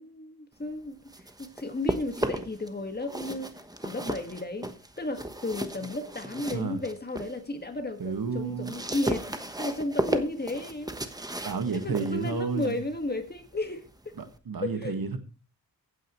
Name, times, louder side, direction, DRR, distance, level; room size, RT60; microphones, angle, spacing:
voice 1, 0.0-3.6 3.8-4.7 5.0-10.9 11.7-14.1 14.6-15.0, left 2 dB, 25° left, 1.8 m, -34 dB
sound 1, 0.9-2.7 3.0-7.4 7.8-14.4, right 1 dB, 10° right, 1.1 m, -35 dB
voice 2, 8.0-8.7 11.4-12.8 14.2-15.2, right 5 dB, 70° right, 1.8 m, -31 dB
15.5 x 9.1 x 3.1 m
wide cardioid pair, 100°, 36 cm